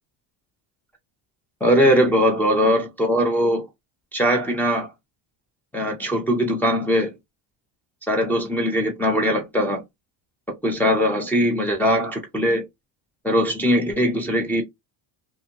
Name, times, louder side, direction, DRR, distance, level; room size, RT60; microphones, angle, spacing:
voice 1, 1.6-3.7 4.1-4.9 5.7-7.1 8.1-9.8 10.6-12.6 13.2-14.6, equal, 5° left, 0.4 m, -20 dB
2.7 x 2.5 x 2.7 m
cardioid pair, 145°, 42 cm